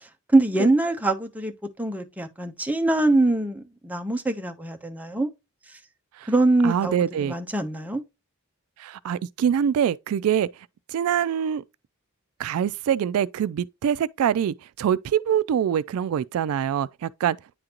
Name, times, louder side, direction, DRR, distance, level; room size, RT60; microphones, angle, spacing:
voice 1, 0.3-5.3 6.3-6.9 7.2-8.0, right 2 dB, 5° right, 0.7 m, -23 dB
voice 2, 6.6-7.4 8.8-10.5 10.9-11.6 12.4-17.4, right 9 dB, 75° right, 0.3 m, -24 dB
9.7 x 3.8 x 2.9 m
head